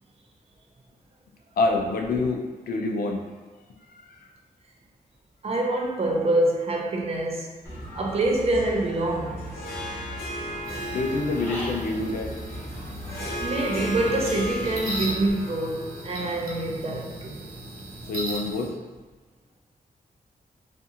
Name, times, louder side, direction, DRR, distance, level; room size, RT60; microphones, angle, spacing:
voice 1, 1.6-3.2 4.2-4.3 10.9-12.3 18.0-18.7, left 3 dB, 70° left, 2 dB, 0.4 m, -26 dB
voice 2, 5.4-7.5 7.9-9.6 13.4-17.4, right 1 dB, 40° right, -1 dB, 0.5 m, -25 dB
Human voice / Bird, 7.6-15.3, equal, 15° left, 0.7 m, -38 dB
Harp, 9.4-18.1, left 1 dB, 90° left, 0.8 m, -37 dB
sound 1, 10.6-18.7, right 1 dB, 75° right, 0.7 m, -38 dB
2.5 x 2.4 x 2.7 m, 1.3 s
wide cardioid pair, 110°, 15 cm